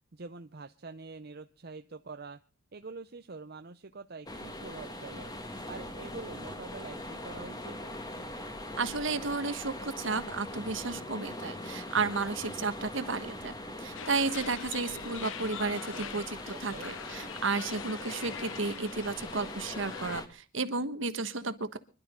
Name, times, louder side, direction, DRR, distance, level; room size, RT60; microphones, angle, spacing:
voice 1, 0.1-2.4 2.7-5.3 5.7-7.8 15.8-16.9, right 4 dB, 50° right, 8 dB, 0.7 m, -45 dB
sound 1, 4.3-20.3, left 1 dB, 20° left, 1.9 m, -41 dB
voice 2, 8.8-13.5 13.8-21.8, right 4 dB, 65° right, 12 dB, 1.4 m, -33 dB
sound 2, 13.9-20.2, left 8 dB, 65° left, 0.7 m, -43 dB
25.5 x 12.0 x 3.8 m, 0.35 s
head